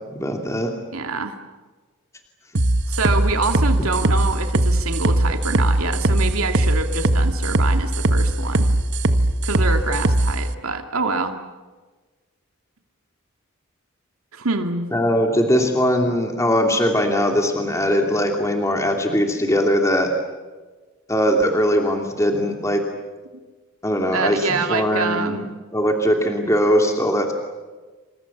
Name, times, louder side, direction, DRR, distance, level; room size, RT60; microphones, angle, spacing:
voice 1, 0.1-0.7 14.9-20.1 21.1-22.8 23.8-25.4 25.7-27.3, equal, 15° left, 3 dB, 2.8 m, -20 dB
voice 2, 0.9-1.4 2.9-8.7 9.4-11.4 14.3-14.9 24.1-25.5, right 3 dB, 85° right, 5 dB, 2.4 m, -26 dB
sound 1, 2.6-10.3, right 1 dB, 55° right, 1.3 m, -19 dB
28.5 x 27.0 x 7.3 m, 1.3 s
head